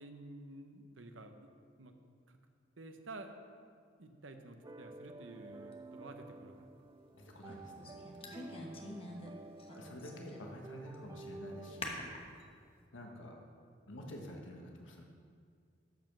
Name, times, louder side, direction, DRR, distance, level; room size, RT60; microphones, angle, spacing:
voice 1, 0.0-1.4 1.8-1.9 2.3-2.4 2.8-3.3 4.0-6.6 8.2-9.5, right 2 dB, 90° right, 6 dB, 1.0 m, -51 dB
sound 1, 4.6-11.8, right 2 dB, 20° right, 0.3 m, -52 dB
sound 2, 5.7-5.8 7.5-9.3 9.6-10.6 10.9-11.0 11.8-12.4, left 2 dB, 30° left, 1.2 m, -45 dB
voice 2, 7.1-8.0 9.7-12.0 12.9-13.4 13.9-15.0, equal, 85° left, 1 dB, 1.3 m, -49 dB
13.0 x 5.4 x 6.0 m, 2.1 s
head